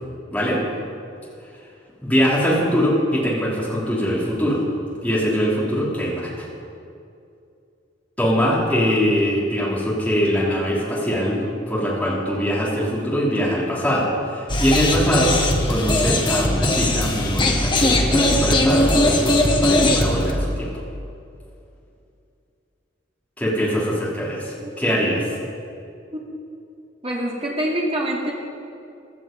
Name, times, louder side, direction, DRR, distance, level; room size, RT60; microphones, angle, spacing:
voice 1, 2.0-4.6 5.0-6.5 8.2-15.4 15.7-20.7 23.4-25.2, equal, 10° left, -6 dB, 3.3 m, -22 dB
sound 1, 14.5-20.3, left 1 dB, 25° left, 1.2 m, -19 dB
voice 2, 27.0-28.3, right 1 dB, 30° right, -3 dB, 2.5 m, -25 dB
16.5 x 12.5 x 5.3 m, 2.5 s
head